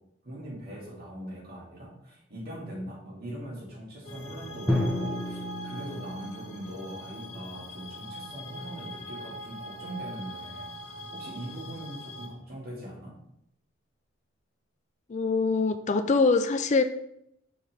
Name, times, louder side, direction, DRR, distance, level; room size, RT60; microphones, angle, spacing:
voice 1, 0.2-13.2, right 1 dB, 50° right, -4 dB, 2.5 m, -41 dB
sound 1, 4.0-12.3, equal, 90° left, 1.8 m, -42 dB
Drum, 4.7-8.5, left 1 dB, ahead, 1.1 m, -33 dB
voice 2, 15.1-16.8, left 4 dB, 35° left, 9 dB, 0.4 m, -24 dB
6.3 x 5.8 x 3.5 m, 0.76 s
head